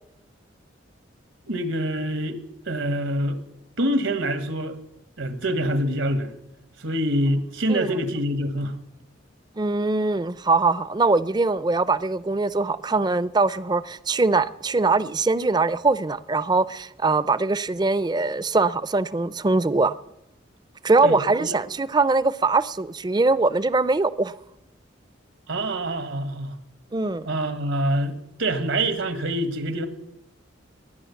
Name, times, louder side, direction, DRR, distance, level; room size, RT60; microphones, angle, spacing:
voice 1, 1.5-2.4 2.7-3.4 3.8-4.8 5.2-6.4 6.8-8.8 21.0-21.5 25.5-26.6 27.3-29.9, right 1 dB, 80° right, 1.6 m, -25 dB
voice 2, 9.6-20.0 20.8-24.3 26.9-27.3, right 3 dB, 20° right, 0.5 m, -22 dB
20.5 x 10.0 x 7.1 m
head